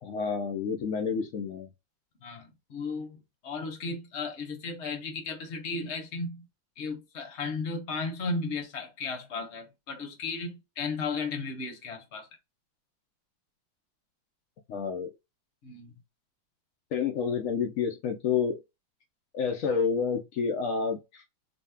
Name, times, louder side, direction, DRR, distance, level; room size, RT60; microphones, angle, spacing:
voice 1, 0.0-1.7 14.7-15.1 16.9-18.6 19.3-21.2, left 6 dB, 80° left, 0.7 m, -29 dB
voice 2, 2.2-3.2 3.4-6.4 6.8-12.3 15.6-15.9, left 4 dB, 50° left, 0.9 m, -35 dB
4.0 x 2.1 x 3.4 m
omnidirectional pair, 2.1 m